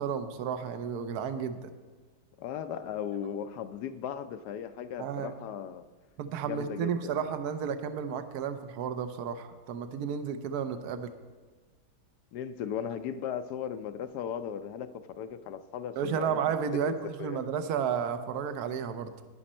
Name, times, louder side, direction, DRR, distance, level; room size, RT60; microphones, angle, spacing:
voice 1, 0.0-1.7 5.0-5.3 6.2-11.1 16.0-19.1, right 7 dB, 70° right, 9 dB, 1.2 m, -32 dB
voice 2, 2.4-5.8 6.4-7.3 12.3-16.4 16.7-17.4, left 8 dB, 75° left, 10 dB, 1.1 m, -37 dB
11.5 x 10.0 x 4.3 m, 1.4 s
omnidirectional pair, 1.8 m